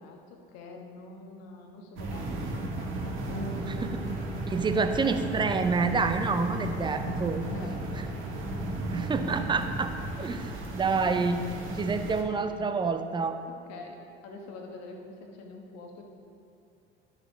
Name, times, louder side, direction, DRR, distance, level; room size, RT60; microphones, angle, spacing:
voice 1, 0.0-4.3 7.5-8.4 13.5-16.0, left 3 dB, 55° left, 2 dB, 1.3 m, -46 dB
sound 1, 2.0-12.2, right 1 dB, 40° right, 1.4 m, -34 dB
Bass guitar, 3.3-12.9, right 3 dB, 10° left, 1.7 m, -48 dB
voice 2, 3.7-4.0 4.5-7.4 8.9-9.9 10.2-13.4, right 4 dB, 15° right, 8 dB, 0.5 m, -28 dB
11.0 x 6.9 x 3.4 m, 2.5 s
figure-of-eight pair, 65°, 32 cm